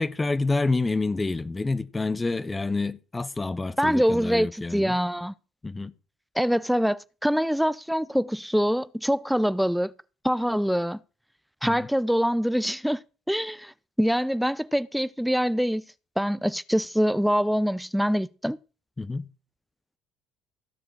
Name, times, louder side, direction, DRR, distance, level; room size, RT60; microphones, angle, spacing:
voice 1, 0.0-5.0 5.6-5.9 11.6-11.9 19.0-19.3, left 3 dB, 20° left, 0.8 m, -28 dB
voice 2, 3.8-5.3 6.4-9.9 10.2-11.0 11.6-13.7 14.0-15.8 16.2-18.6, equal, ahead, 0.5 m, -24 dB
16.5 x 6.8 x 6.2 m
hypercardioid pair, 65°, 0 cm